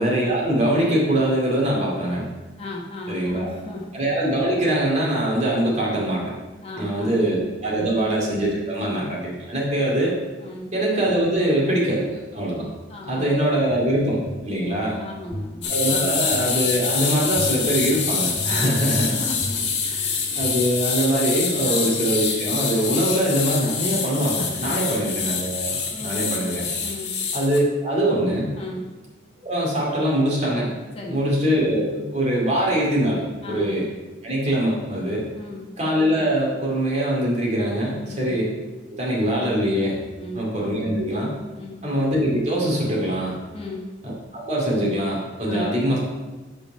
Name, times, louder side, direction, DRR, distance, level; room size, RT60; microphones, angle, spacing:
voice 1, 0.0-2.2 3.1-3.5 3.9-6.3 6.8-10.1 10.7-12.1 12.3-12.7 13.1-15.0 15.7-19.2 20.4-26.7 27.3-28.5 29.4-30.7 31.1-33.2 33.5-33.9 34.2-35.2 35.8-38.5 38.9-40.0 40.4-41.4 41.8-43.4 44.3-46.0, right 1 dB, 40° right, -4 dB, 2.4 m, -23 dB
voice 2, 2.6-3.9 6.6-7.2 7.7-8.0 10.4-10.7 12.9-13.5 15.0-16.2 18.5-20.3 21.6-22.0 24.6-24.9 25.9-26.4 26.8-27.1 28.6-28.9 30.9-31.3 33.4-33.7 35.4-35.8 38.0-38.3 40.2-40.5 41.5-41.8 43.5-43.9 45.5-45.8, left 1 dB, 30° left, -2 dB, 1.2 m, -36 dB
sound 1, 13.7-20.5, left 1 dB, 85° left, 1.4 m, -39 dB
sound 2, 15.6-27.6, left 5 dB, 70° left, 1.5 m, -26 dB
8.3 x 5.1 x 5.5 m, 1.2 s
head